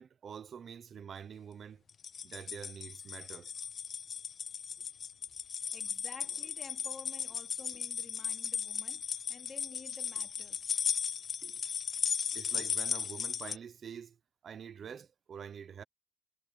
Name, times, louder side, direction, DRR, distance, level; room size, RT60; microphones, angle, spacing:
voice 1, 0.0-1.8 2.2-3.5 12.3-15.8, right 7 dB, 70° right, 0.9 m, -46 dB
sound 1, 1.9-13.6, left 7 dB, 70° left, 0.5 m, -36 dB
voice 2, 5.7-10.7 11.4-11.6 12.3-12.4 14.8-15.0, left 4 dB, 50° left, 3.2 m, -52 dB
cardioid pair, 75°, 0 cm